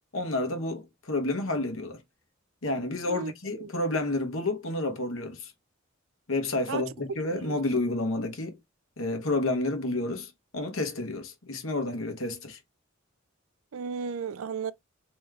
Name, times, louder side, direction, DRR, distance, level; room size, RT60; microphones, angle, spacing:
voice 1, 0.1-2.0 2.6-5.5 6.3-8.6 9.0-12.6, left 2 dB, 80° left, 1.2 m, -30 dB
voice 2, 3.1-3.7 6.7-6.8 7.4-7.6 13.7-14.7, right 6 dB, 80° right, 0.5 m, -34 dB
3.6 x 3.0 x 3.2 m
head